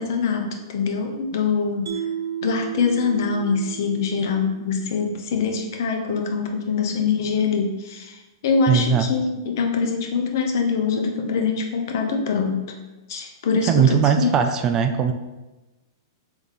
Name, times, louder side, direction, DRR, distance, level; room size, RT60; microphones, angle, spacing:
voice 1, 0.0-1.9 2.4-12.6 13.1-14.3, left 5 dB, 65° left, 3 dB, 0.7 m, -24 dB
Mallet percussion, 1.9-5.1, right 9 dB, 70° right, 0.6 m, -33 dB
voice 2, 8.7-9.1 13.7-15.1, right 7 dB, 25° right, 6 dB, 0.3 m, -19 dB
3.4 x 3.4 x 4.0 m, 1.1 s
hypercardioid pair, 130°, 2 cm